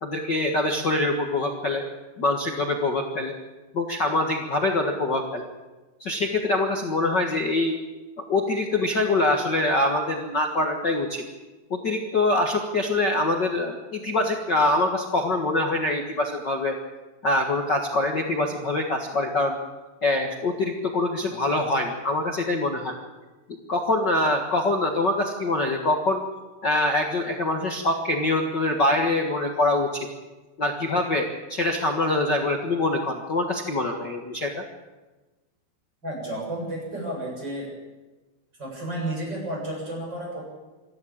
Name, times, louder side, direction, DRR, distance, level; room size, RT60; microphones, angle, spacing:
voice 1, 0.0-1.8 2.2-3.3 3.7-5.4 6.0-7.8 8.3-11.2 11.7-16.8 17.2-19.6 20.0-23.0 23.7-26.2 26.6-30.1 30.6-34.6, left 2 dB, 85° left, 2 dB, 0.9 m, -24 dB
voice 2, 36.0-37.7 38.6-40.5, right 1 dB, 25° right, -1 dB, 7.9 m, -32 dB
26.0 x 13.0 x 8.8 m, 1.2 s
omnidirectional pair, 4.8 m